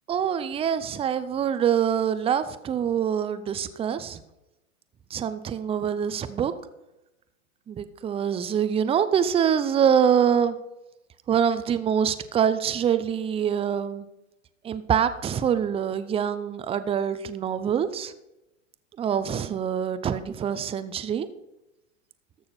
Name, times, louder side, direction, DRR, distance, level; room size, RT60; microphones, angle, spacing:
voice 1, 0.1-4.2 5.1-6.5 7.7-10.5 11.3-14.0 14.6-18.1 19.0-21.3, right 8 dB, 15° right, 12 dB, 0.6 m, -25 dB
13.5 x 6.4 x 4.3 m, 0.94 s
hypercardioid pair, 110°, 37 cm